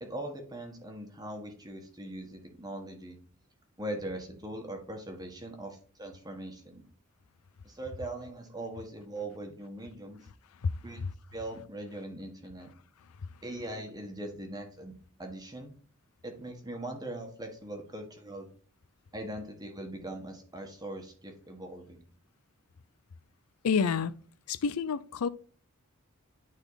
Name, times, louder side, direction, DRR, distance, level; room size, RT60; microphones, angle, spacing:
voice 1, 0.0-3.2 3.8-6.8 7.6-10.2 10.8-11.0 11.3-12.7 13.4-15.7 16.2-18.5 19.1-22.0, right 1 dB, 20° right, 1.5 m, -41 dB
voice 2, 10.6-11.1 23.6-24.1 24.5-25.3, left 5 dB, 80° left, 0.5 m, -29 dB
9.9 x 4.1 x 4.0 m
head